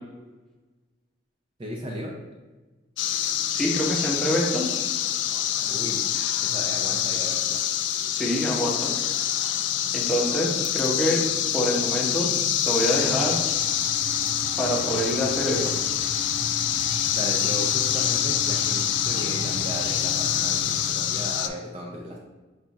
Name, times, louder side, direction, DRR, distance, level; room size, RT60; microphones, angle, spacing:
voice 1, 1.6-2.1 5.7-6.1 6.4-7.6 17.1-22.2, right 1 dB, 30° right, -1 dB, 0.5 m, -35 dB
sound 1, 3.0-21.5, left 11 dB, 70° left, 0.3 m, -26 dB
voice 2, 3.5-4.7 8.1-9.0 9.4-9.6 9.9-11.3 11.5-12.3 12.6-13.4 14.6-15.7, equal, ahead, -4 dB, 0.8 m, -26 dB
sound 2, 13.0-20.9, right 1 dB, 70° right, 0.6 m, -37 dB
4.7 x 2.4 x 4.0 m, 1.2 s
head